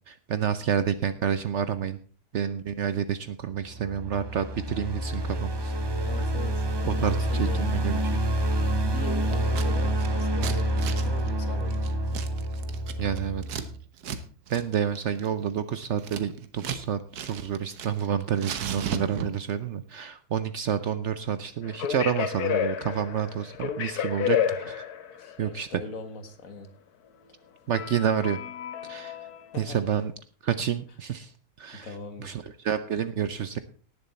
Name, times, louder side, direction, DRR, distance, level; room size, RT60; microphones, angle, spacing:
voice 1, 0.0-2.0 2.3-5.7 6.9-8.2 13.0-13.7 14.1-14.2 14.5-24.8 25.4-25.7 27.7-28.4 28.8-29.3 29.5-30.1 30.4-31.3 31.6-33.6, right 8 dB, 60° right, 12 dB, 0.9 m, -29 dB
sound 1, 3.5-13.8, right 1 dB, 30° right, 0.5 m, -28 dB
voice 2, 6.0-8.2 8.8-12.0 24.2-24.5 25.2-26.7 29.5-29.9 31.7-32.4, left 3 dB, 60° left, 8 dB, 1.9 m, -41 dB
Scissors, 9.3-9.7 9.9-13.7 14.0-14.2 14.5-14.6 15.0-16.8 17.1-18.1 18.4-19.5, right 7 dB, 85° right, 1.5 m, -36 dB
sound 2, 21.7-25.3 27.7-29.9, left 9 dB, 80° left, 1.4 m, -30 dB
18.0 x 7.1 x 4.2 m, 0.41 s
omnidirectional pair, 1.6 m